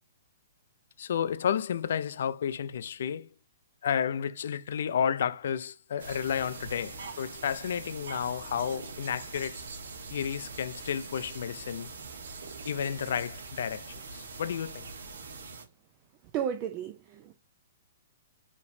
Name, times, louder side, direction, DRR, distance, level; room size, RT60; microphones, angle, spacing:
voice 1, 1.0-3.3 3.8-9.7 10.1-11.9 12.6-14.9, left 8 dB, 65° left, 0.4 m, -32 dB
sound 1, 6.0-15.7, right 4 dB, 80° right, 1.2 m, -43 dB
voice 2, 16.3-17.3, right 9 dB, 30° right, 0.4 m, -33 dB
4.9 x 3.0 x 2.6 m
hypercardioid pair, 160°, 0 cm